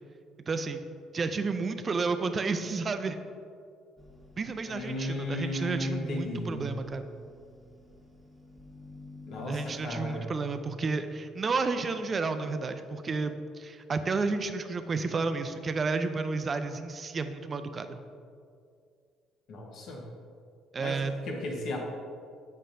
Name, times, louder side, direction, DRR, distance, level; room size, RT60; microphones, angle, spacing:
voice 1, 0.5-0.8 1.1-3.2 4.4-7.1 9.5-18.0 20.7-21.1, right 4 dB, 40° right, 9 dB, 0.4 m, -31 dB
sound 1, 4.0-10.2, left 2 dB, ahead, 1.3 m, -51 dB
voice 2, 4.7-6.8 9.3-10.3 19.5-20.1 20.8-21.8, left 1 dB, 65° left, 0 dB, 1.1 m, -35 dB
7.3 x 5.3 x 2.6 m, 2.4 s
hypercardioid pair, 60°, 0 cm